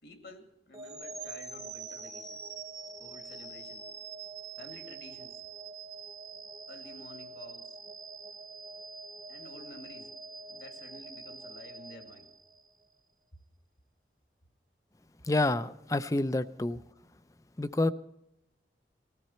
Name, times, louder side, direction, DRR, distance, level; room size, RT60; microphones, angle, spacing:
voice 1, 0.0-2.4 3.0-3.9 4.6-5.4 6.7-7.8 9.3-10.1 10.5-12.3, left 1 dB, 70° left, 2.2 m, -51 dB
sound 1, 0.7-12.8, right 4 dB, 20° right, 0.9 m, -45 dB
voice 2, 15.2-16.8 17.6-17.9, left 2 dB, 20° left, 0.4 m, -28 dB
19.5 x 14.5 x 4.4 m
head